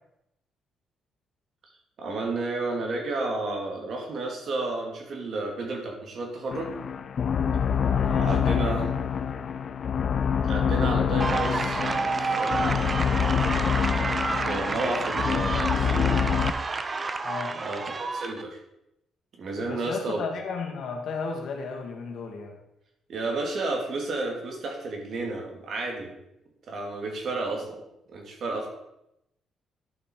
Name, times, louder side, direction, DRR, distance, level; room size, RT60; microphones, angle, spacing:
voice 1, 2.0-6.7 8.2-8.9 10.4-12.9 14.3-16.3 17.5-18.6 19.4-20.2 23.1-26.1 26.7-27.8 28.1-28.7, right 2 dB, 60° right, 1 dB, 2.5 m, -32 dB
sound 1, 6.5-16.5, left 7 dB, 55° left, 0.5 m, -26 dB
voice 2, 7.9-8.8 17.2-17.5 19.6-22.6, left 4 dB, 70° left, 2 dB, 1.9 m, -34 dB
sound 2, 11.2-18.4, right 3 dB, 30° right, 0.7 m, -29 dB
11.0 x 5.7 x 4.6 m, 0.84 s
cardioid pair, 90°, 0 cm